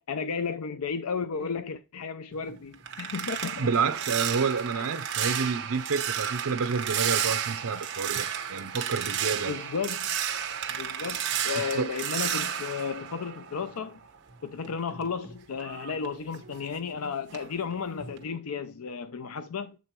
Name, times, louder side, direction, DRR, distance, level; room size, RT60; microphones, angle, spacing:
voice 1, 0.1-3.7 9.5-10.1 10.7-14.0 14.4-19.8, left 5 dB, 85° left, 0.5 m, -33 dB
sound 1, 2.3-14.0 14.3-17.0 17.3-17.6 18.0-18.2, right 9 dB, 55° right, 1.0 m, -32 dB
voice 2, 3.6-9.6 11.6-11.9, right 5 dB, 85° right, 0.6 m, -29 dB
8.3 x 3.9 x 4.4 m
head